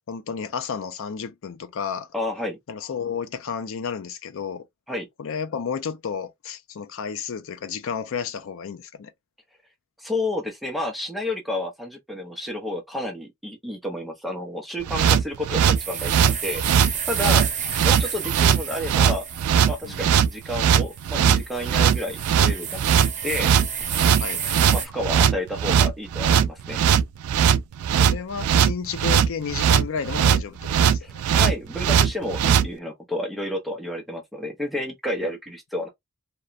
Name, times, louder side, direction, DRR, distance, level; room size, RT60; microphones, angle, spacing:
voice 1, 0.1-2.1 2.7-4.6 5.2-9.1 17.2-17.4 19.8-20.1 24.2-24.4 28.0-31.2, left 6 dB, 65° left, 0.4 m, -32 dB
voice 2, 2.1-2.6 4.9-5.1 10.0-17.5 17.8-19.3 19.6-22.8 23.2-23.5 24.7-26.8 31.0-35.9, left 1 dB, ahead, 0.5 m, -30 dB
sound 1, 14.9-32.7, right 8 dB, 90° right, 0.3 m, -20 dB
sound 2, 15.7-24.9, right 7 dB, 35° right, 0.8 m, -32 dB
2.9 x 2.1 x 2.4 m
head